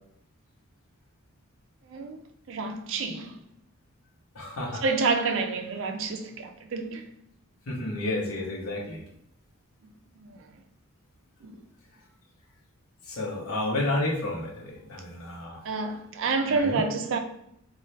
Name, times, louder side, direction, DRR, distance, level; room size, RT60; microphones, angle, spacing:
voice 1, 1.9-2.2 2.5-3.4 4.8-7.0 10.2-10.4 11.4-11.6 15.6-17.2, right 4 dB, 60° right, 0.4 m, -28 dB
voice 2, 4.3-4.8 7.7-9.0 13.1-15.6 16.5-16.8, left 1 dB, 80° left, 0.8 m, -31 dB
2.6 x 2.3 x 3.1 m
head